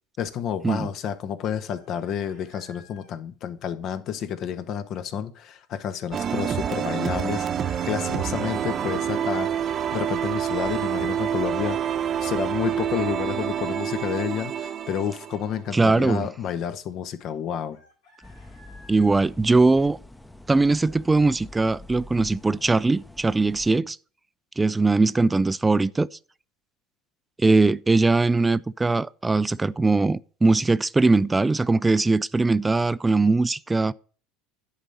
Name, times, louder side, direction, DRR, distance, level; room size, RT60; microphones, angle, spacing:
voice 1, 0.2-7.5 7.8-17.8, left 8 dB, 55° left, 0.9 m, -30 dB
Chicken rooster, 1.7-3.2 6.5-8.1 12.6-14.2 17.7-19.2, left 3 dB, 75° left, 2.6 m, -54 dB
sound 1, 6.1-16.0, right 9 dB, 40° right, 0.8 m, -27 dB
voice 2, 15.7-16.3 18.9-20.0 20.5-24.0 24.6-26.1 27.4-33.9, right 3 dB, 15° right, 0.3 m, -21 dB
sound 2, 18.2-23.7, left 2 dB, 5° left, 0.7 m, -45 dB
9.9 x 4.0 x 6.9 m
hypercardioid pair, 85°, 0 cm